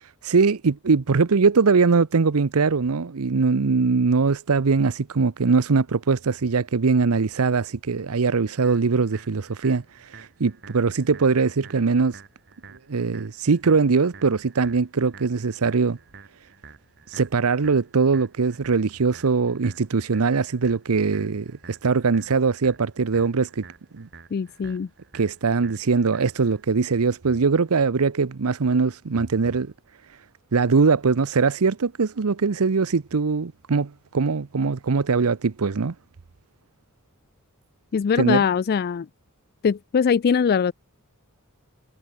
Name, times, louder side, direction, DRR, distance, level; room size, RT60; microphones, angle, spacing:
voice 1, 0.2-12.2 12.9-16.0 17.1-23.6 23.9-24.1 25.1-29.7 30.5-35.9 38.2-38.4, right 4 dB, 85° right, 0.7 m, -21 dB
sound 1, 8.6-26.6, right 4 dB, 55° right, 7.1 m, -49 dB
voice 2, 24.3-24.9 37.9-39.1 39.6-40.7, left 6 dB, 45° left, 0.3 m, -22 dB
head